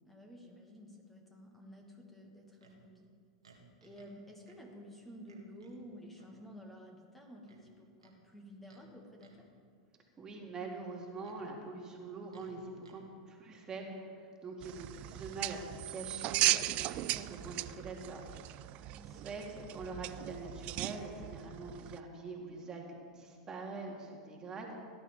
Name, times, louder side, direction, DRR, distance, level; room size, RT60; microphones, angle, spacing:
voice 1, 0.0-3.1 3.8-9.5 18.7-19.2, equal, 5° left, 0 dB, 2.0 m, -52 dB
Livestock farm animals working animals, 2.6-2.8 3.4-4.2 4.4-4.6 5.3-5.8 6.1-6.4 7.4-8.2 8.6-8.9 9.2-9.5 10.8-11.4 12.3-13.0, right 4 dB, 90° right, 2.0 m, -62 dB
voice 2, 10.2-24.8, right 3 dB, 25° right, 0 dB, 2.2 m, -44 dB
sound 1, 14.6-22.0, right 17 dB, 45° right, 0.4 m, -37 dB
18.0 x 11.0 x 3.6 m, 2.2 s
hypercardioid pair, 95°, 3 cm